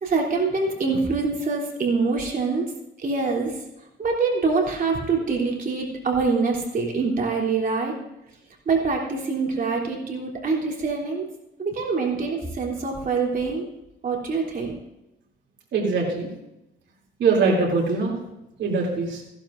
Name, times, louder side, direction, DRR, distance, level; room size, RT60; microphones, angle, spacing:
voice 1, 0.0-2.7 3.0-3.5 4.0-7.9 8.6-11.3 11.6-13.6 14.0-14.8, right 4 dB, 45° right, -1 dB, 3.2 m, -25 dB
voice 2, 15.7-16.3 17.2-18.2 18.6-19.2, right 4 dB, 65° right, -2 dB, 2.9 m, -22 dB
15.5 x 11.5 x 2.6 m, 0.88 s
cardioid pair, 90°, 20 cm